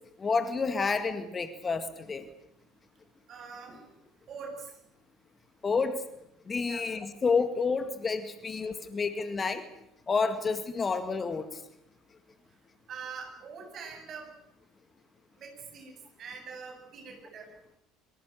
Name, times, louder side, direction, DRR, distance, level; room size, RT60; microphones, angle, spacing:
voice 1, 0.2-2.3 5.6-6.0 6.5-9.6 10.1-11.6, left 4 dB, 25° left, 10 dB, 2.0 m, -29 dB
voice 2, 3.3-3.8 4.3-4.7 6.6-6.9 12.9-14.3 15.4-15.9 16.2-17.5, right 5 dB, 40° right, 3 dB, 7.8 m, -43 dB
24.5 x 24.0 x 6.6 m, 0.80 s
figure-of-eight pair, 65°, 0 cm